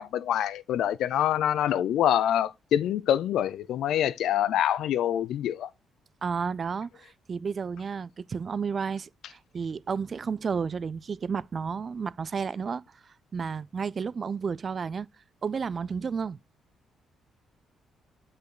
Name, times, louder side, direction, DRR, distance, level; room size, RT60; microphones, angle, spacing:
voice 1, 0.0-5.7, left 11 dB, 80° left, 0.6 m, -26 dB
voice 2, 6.2-15.1 15.4-16.4, right 6 dB, 40° right, 0.3 m, -32 dB
8.3 x 4.3 x 4.9 m
cardioid pair, 90°, 0 cm